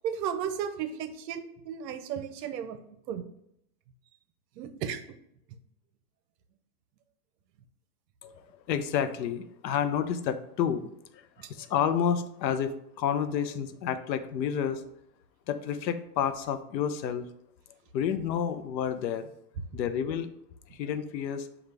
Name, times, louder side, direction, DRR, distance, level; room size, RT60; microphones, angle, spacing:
voice 1, 0.0-2.8 3.1-3.2 4.6-5.0 11.4-11.5, right 8 dB, 75° right, 10 dB, 0.7 m, -34 dB
voice 2, 8.7-10.9 11.4-14.8 15.5-17.3 17.9-19.3 19.7-20.3 20.7-21.5, left 8 dB, 90° left, 11 dB, 0.6 m, -30 dB
5.1 x 2.4 x 3.2 m, 0.76 s
supercardioid pair, 145°, 50 cm